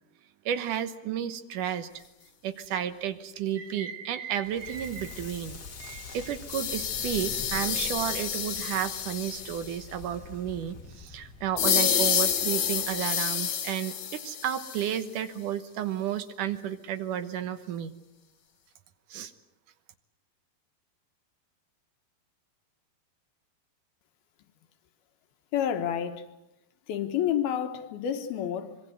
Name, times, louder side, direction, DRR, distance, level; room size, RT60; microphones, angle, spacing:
voice 1, 0.5-2.0 2.4-17.9 19.1-19.3, right 10 dB, 65° right, 2.4 m, -32 dB
Crackle, 4.4-13.4, left 4 dB, 40° left, 1.5 m, -45 dB
sound 1, 6.5-9.8 11.6-15.1, left 8 dB, 55° left, 2.6 m, -29 dB
voice 2, 25.5-26.3 26.9-28.8, left 9 dB, 80° left, 3.2 m, -29 dB
25.5 x 23.0 x 8.1 m
omnidirectional pair, 4.3 m